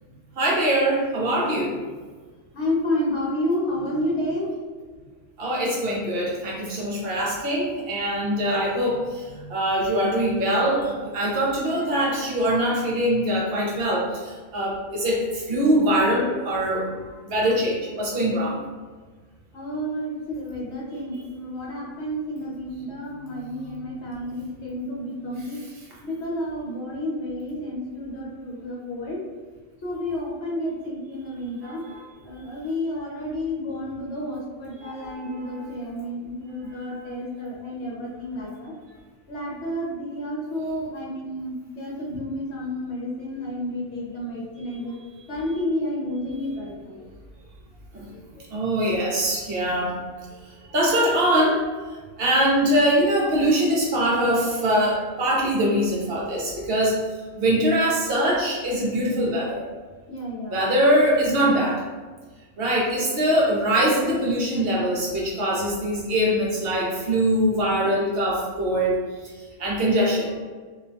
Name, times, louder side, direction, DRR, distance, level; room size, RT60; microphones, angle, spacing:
voice 1, 0.4-1.7 5.4-18.6 31.6-32.0 34.8-35.6 36.8-37.0 47.9-48.0 48.5-50.0 50.7-51.6 52.2-57.0 57.4-59.6 60.5-61.8 62.6-69.0 69.6-70.4, right 1 dB, 60° right, -3 dB, 0.7 m, -23 dB
voice 2, 2.5-4.6 9.4-9.6 19.5-25.6 26.0-29.2 29.8-31.8 32.2-38.7 39.3-45.0 45.3-47.0 48.1-48.2 60.1-60.6, left 1 dB, 65° left, -4 dB, 0.8 m, -30 dB
2.4 x 2.1 x 2.6 m, 1.4 s
omnidirectional pair, 1.4 m